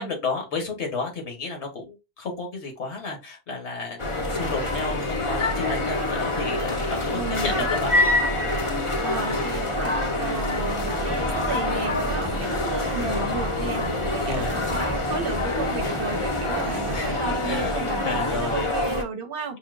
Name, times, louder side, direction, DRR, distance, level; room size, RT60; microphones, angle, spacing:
voice 1, 0.0-4.0 4.3-7.9 14.2-14.5 16.9-17.1 17.4-18.7, left 3 dB, 80° left, 1.5 m, -32 dB
sound 1, 4.0-19.0, left 2 dB, 35° left, 0.6 m, -26 dB
voice 2, 7.1-7.7 9.0-19.6, right 4 dB, 60° right, 0.8 m, -33 dB
sound 2, 10.6-17.7, right 2 dB, 25° right, 1.0 m, -37 dB
5.4 x 2.7 x 2.5 m
omnidirectional pair, 1.1 m